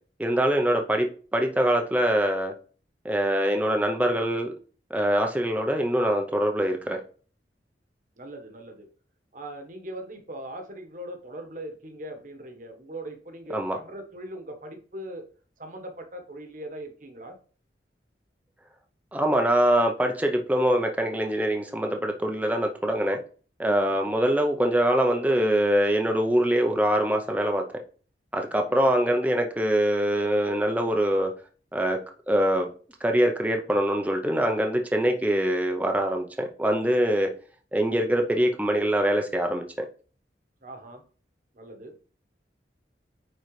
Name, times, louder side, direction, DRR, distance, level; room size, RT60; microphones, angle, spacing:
voice 1, 0.2-2.5 3.0-4.5 4.9-7.0 13.5-13.8 19.1-23.2 23.6-27.6 28.3-31.3 31.7-32.0 32.3-32.7 33.0-37.3 37.7-39.9, right 1 dB, 10° right, 3 dB, 0.7 m, -24 dB
voice 2, 8.2-8.9 9.3-15.3 15.6-17.4 28.7-29.0 40.6-41.0 41.5-42.0, right 1 dB, 45° right, 5 dB, 1.3 m, -40 dB
9.0 x 4.0 x 3.2 m, 0.40 s
head